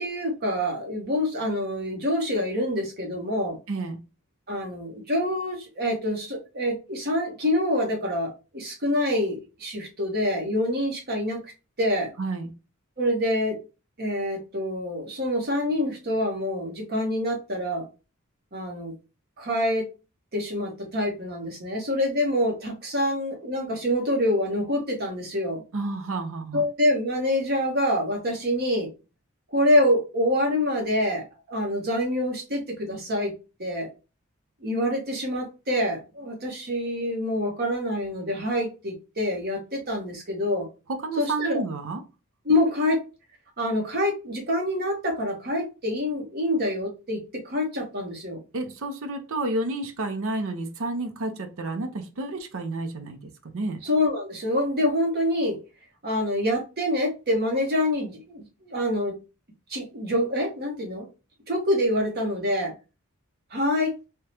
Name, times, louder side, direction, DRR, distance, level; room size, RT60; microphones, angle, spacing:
voice 1, 0.0-3.6 4.5-11.5 11.8-12.1 13.0-13.6 14.0-17.9 18.5-18.9 19.4-19.8 20.3-25.6 26.5-28.9 29.5-33.3 33.6-33.9 34.6-40.7 41.2-41.6 42.4-43.0 43.6-48.4 53.8-55.6 56.0-59.2 59.7-61.1 61.5-62.7 63.5-64.0, left 1 dB, 45° right, 1.1 m, -26 dB
voice 2, 3.7-4.0 12.2-12.5 25.7-26.6 40.9-42.0 48.5-53.8, right 2 dB, 65° right, 0.6 m, -30 dB
3.5 x 2.1 x 2.8 m
head